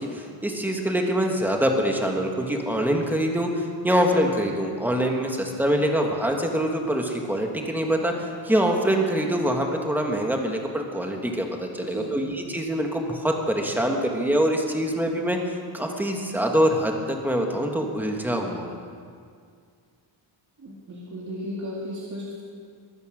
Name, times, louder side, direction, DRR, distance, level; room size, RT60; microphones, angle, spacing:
voice 1, 0.1-18.8, equal, 5° right, 1 dB, 1.6 m, -24 dB
voice 2, 11.8-12.2 20.6-22.4, equal, 35° right, -5 dB, 2.3 m, -35 dB
22.5 x 9.8 x 6.4 m, 2.2 s
wide cardioid pair, 160°, 47 cm